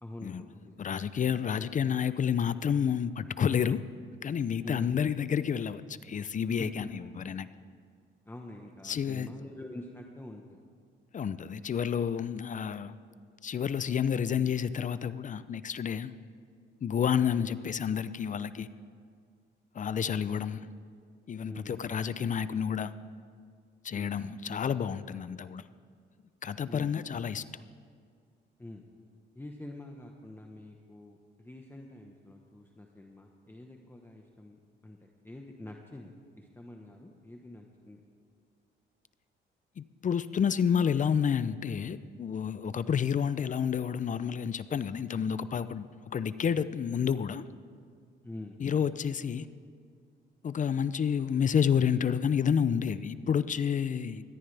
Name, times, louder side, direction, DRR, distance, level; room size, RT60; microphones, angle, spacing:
voice 1, 0.0-0.9 4.6-5.0 6.6-6.9 8.3-10.6 17.3-17.5 21.4-21.8 23.9-24.2 26.7-26.9 28.6-28.8 29.3-38.0 48.2-48.6, left 1 dB, 10° left, 1 dB, 1.2 m, -46 dB
voice 2, 0.8-3.8 4.2-7.5 8.8-9.3 11.1-12.9 13.4-16.1 16.8-18.7 19.7-20.7 21.3-22.9 23.8-25.6 26.4-27.4 39.8-45.9 46.1-47.4 48.6-49.5 50.4-54.2, left 7 dB, 40° left, 15 dB, 0.6 m, -30 dB
20.5 x 14.0 x 3.4 m, 2.1 s
cardioid pair, 90°, 20 cm